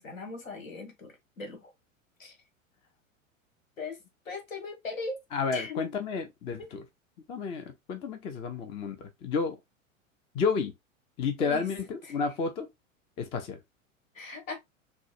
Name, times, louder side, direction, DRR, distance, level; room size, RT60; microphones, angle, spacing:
voice 1, 0.0-1.7 2.2-2.4 3.8-4.0 4.2-5.2 5.5-5.9 6.6-6.7 11.4-11.7 12.0-12.2 14.1-14.5, left 3 dB, 75° left, 1.5 m, -39 dB
voice 2, 5.3-6.8 7.3-9.6 10.3-10.7 11.2-12.7 13.2-13.6, left 5 dB, 15° left, 0.3 m, -31 dB
6.0 x 2.1 x 2.3 m
figure-of-eight pair, 90°, 40 cm